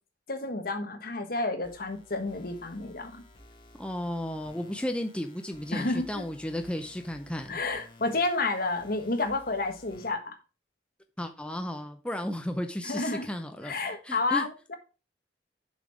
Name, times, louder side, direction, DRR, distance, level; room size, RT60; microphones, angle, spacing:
voice 1, 0.3-3.2 5.7-6.2 7.5-10.3 12.8-13.3 13.6-14.7, left 3 dB, 55° left, 1.5 m, -30 dB
sound 1, 1.6-10.1, left 2 dB, 30° left, 1.8 m, -55 dB
voice 2, 3.8-7.6 11.2-13.7 14.0-14.5, left 1 dB, 5° left, 0.6 m, -34 dB
7.1 x 5.8 x 5.0 m
head